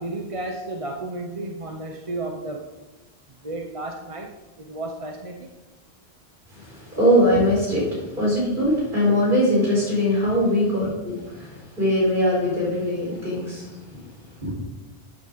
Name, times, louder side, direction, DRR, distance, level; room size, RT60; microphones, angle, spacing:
voice 1, 0.0-2.7 3.4-4.3 4.6-5.5, right 2 dB, 35° right, 1 dB, 0.9 m, -32 dB
voice 2, 6.7-7.9 8.2-13.7 14.4-14.5, equal, 50° right, -5 dB, 5.1 m, -21 dB
13.5 x 9.0 x 4.0 m, 1.1 s
omnidirectional pair, 1.1 m